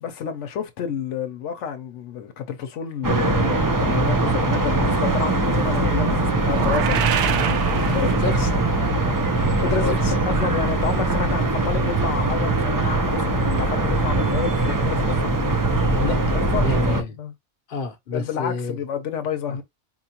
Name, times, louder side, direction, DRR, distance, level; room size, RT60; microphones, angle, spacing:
voice 1, 0.0-7.0 7.3-8.2 9.6-10.0 10.4-15.3 16.5-17.3 18.1-19.6, left 8 dB, 85° left, 1.0 m, -30 dB
sound 1, 3.0-17.0, right 2 dB, 25° right, 0.4 m, -21 dB
sound 2, 6.4-8.6, right 9 dB, 80° right, 0.9 m, -26 dB
voice 2, 8.0-8.6 9.7-10.1 15.9-17.2 17.7-18.8 19.5-19.6, left 4 dB, 50° left, 0.9 m, -30 dB
4.4 x 2.4 x 2.8 m
omnidirectional pair, 1.2 m